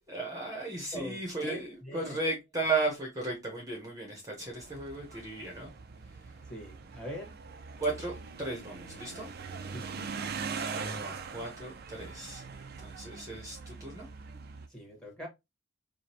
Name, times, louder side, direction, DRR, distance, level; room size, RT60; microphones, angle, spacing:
voice 1, 0.1-5.7 7.8-9.3 10.7-14.1, right 2 dB, 15° right, 1.0 m, -35 dB
voice 2, 0.9-2.2 6.5-7.3 9.7-10.0 14.7-15.3, equal, 5° left, 1.4 m, -42 dB
sound 1, 4.6-14.7, right 5 dB, 50° right, 0.5 m, -42 dB
4.9 x 2.3 x 2.8 m
head